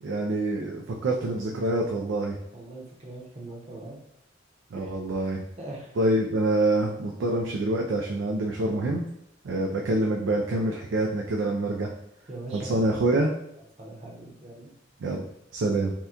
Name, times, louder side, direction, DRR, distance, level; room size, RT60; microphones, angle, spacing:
voice 1, 0.0-2.4 4.7-5.4 6.0-9.0 9.4-11.9 12.5-13.3 15.0-15.3 15.5-15.9, right 2 dB, 80° right, 0 dB, 0.4 m, -26 dB
voice 2, 2.5-4.0 4.7-4.9 5.6-5.9 12.3-13.3 13.8-14.7 15.6-15.8, right 2 dB, 35° right, -2 dB, 0.8 m, -41 dB
2.9 x 2.2 x 3.5 m, 0.75 s
head